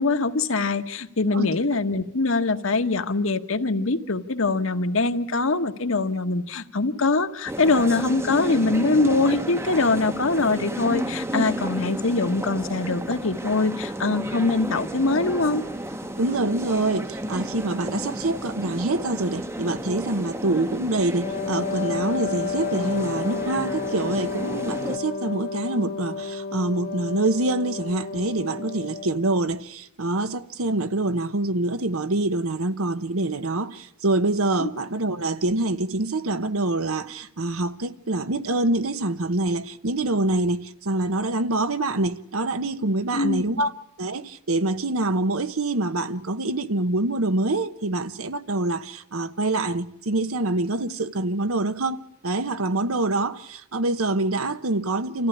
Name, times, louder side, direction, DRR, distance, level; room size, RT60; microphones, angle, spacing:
voice 1, 0.0-15.6 34.6-34.7 43.1-43.4, left 3 dB, 65° left, 1.3 m, -23 dB
sound 1, 7.5-25.0, right 1 dB, 10° right, 0.8 m, -32 dB
voice 2, 16.2-43.7 44.0-55.3, right 2 dB, 85° right, 1.1 m, -25 dB
Wind instrument woodwind instrument, 21.2-29.3, left 5 dB, 40° left, 1.0 m, -31 dB
27.5 x 14.5 x 10.0 m
head